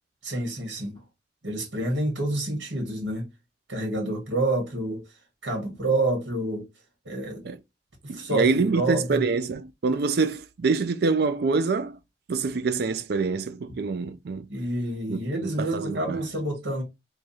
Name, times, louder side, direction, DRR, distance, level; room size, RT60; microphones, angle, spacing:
voice 1, 0.2-1.0 1.4-3.3 3.7-5.0 5.4-6.6 7.0-7.4 8.0-9.2 14.5-16.8, right 1 dB, 90° right, 1.5 m, -28 dB
voice 2, 8.1-12.0 12.3-14.5 15.1-16.2, right 4 dB, 60° right, 0.4 m, -26 dB
3.2 x 2.4 x 4.0 m
head